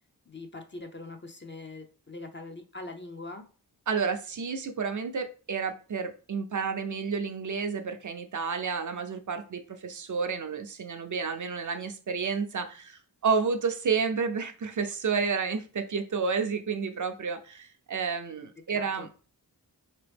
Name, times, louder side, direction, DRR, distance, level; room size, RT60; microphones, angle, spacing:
voice 1, 0.3-3.5 18.7-19.1, left 2 dB, 30° left, 5 dB, 0.5 m, -42 dB
voice 2, 3.9-19.2, right 5 dB, 50° right, 6 dB, 0.5 m, -30 dB
4.4 x 3.0 x 3.3 m, 0.38 s
wide cardioid pair, 100°, 39 cm